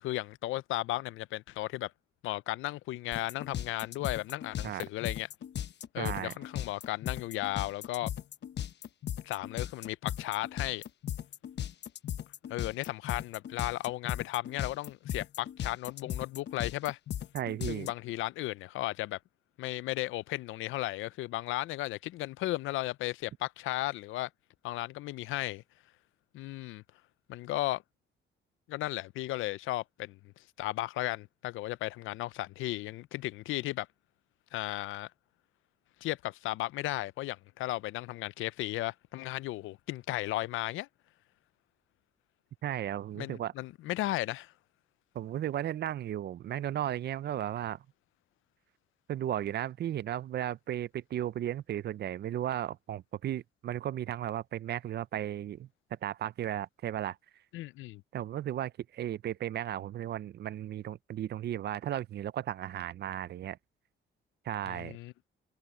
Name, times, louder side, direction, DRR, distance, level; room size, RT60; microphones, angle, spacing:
voice 1, 0.0-1.9 2.2-5.3 5.9-8.1 9.2-10.8 12.5-17.0 17.7-19.2 19.6-24.3 24.6-25.6 26.3-26.8 27.3-27.8 28.7-30.2 30.6-33.9 34.5-35.1 36.0-40.9 43.2-44.5 57.5-58.0 64.7-65.1, left 17 dB, 85° left, 0.5 m, -35 dB
sound 1, 3.1-17.9, left 10 dB, 60° left, 1.0 m, -37 dB
voice 2, 6.0-6.3 17.3-17.9 42.6-43.5 45.1-47.8 49.1-55.7 56.0-57.2 58.1-63.6 64.4-65.0, right 11 dB, 55° right, 0.5 m, -35 dB
cardioid pair, 90°, 20 cm